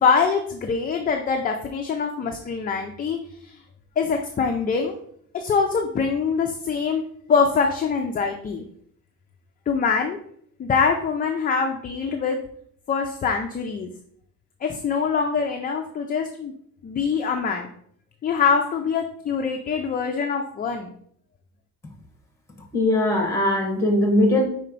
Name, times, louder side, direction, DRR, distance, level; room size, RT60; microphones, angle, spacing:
voice 1, 0.0-3.6 4.0-5.0 5.3-7.0 7.3-8.6 9.7-10.2 10.6-12.4 12.9-13.9 14.6-16.5 16.8-17.7 18.2-20.9, left 5 dB, 25° left, 3 dB, 0.4 m, -24 dB
voice 2, 22.7-24.4, left 1 dB, 10° left, 2 dB, 1.3 m, -20 dB
4.9 x 4.3 x 5.2 m, 0.65 s
cardioid pair, 175°, 34 cm